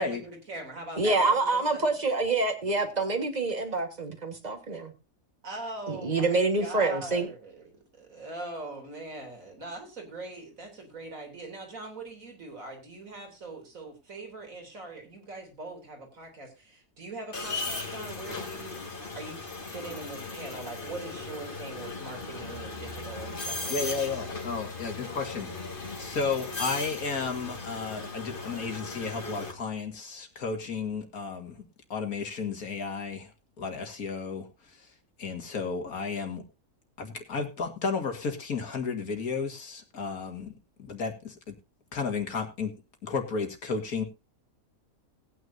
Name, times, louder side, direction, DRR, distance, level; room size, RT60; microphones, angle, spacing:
voice 1, 0.0-2.1 5.4-18.8 19.1-19.4 19.7-24.2, right 2 dB, 65° right, 3.7 m, -42 dB
voice 2, 1.0-4.9 5.9-7.3, right 3 dB, 30° right, 1.8 m, -26 dB
sound 1, 17.3-29.5, left 3 dB, 35° left, 2.1 m, -37 dB
voice 3, 23.7-25.5 26.0-31.6 31.9-33.3 33.6-34.9 35.2-36.4 37.0-40.5 40.8-41.5 41.9-42.7 43.0-44.0, left 4 dB, 80° left, 2.5 m, -33 dB
19.0 x 9.4 x 2.7 m
omnidirectional pair, 1.5 m